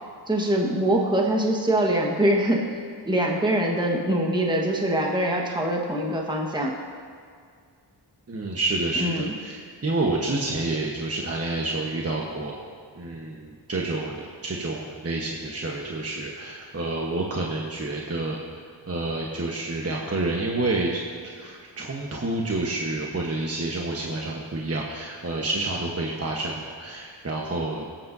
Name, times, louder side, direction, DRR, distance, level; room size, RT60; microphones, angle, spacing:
voice 1, 0.3-2.6 3.1-6.7 9.0-9.2, right 1 dB, 10° right, 0 dB, 1.3 m, -23 dB
voice 2, 8.3-12.5 12.9-18.6 18.9-27.8, right 2 dB, 35° right, -2 dB, 1.1 m, -29 dB
18.5 x 8.7 x 2.7 m, 2.1 s
wide cardioid pair, 75°, 43 cm